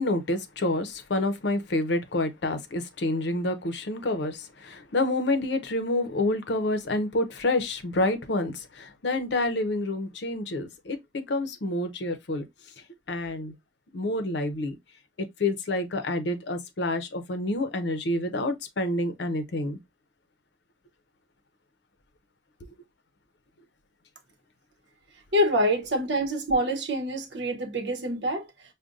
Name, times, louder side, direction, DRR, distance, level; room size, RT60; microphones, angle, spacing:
voice 1, 0.0-12.5 13.1-13.5 13.9-14.7 15.2-19.8 22.6-22.7, left 2 dB, 75° left, 0.6 m, -28 dB
voice 2, 25.3-28.5, equal, 75° right, 0.8 m, -26 dB
5.1 x 2.2 x 2.4 m
head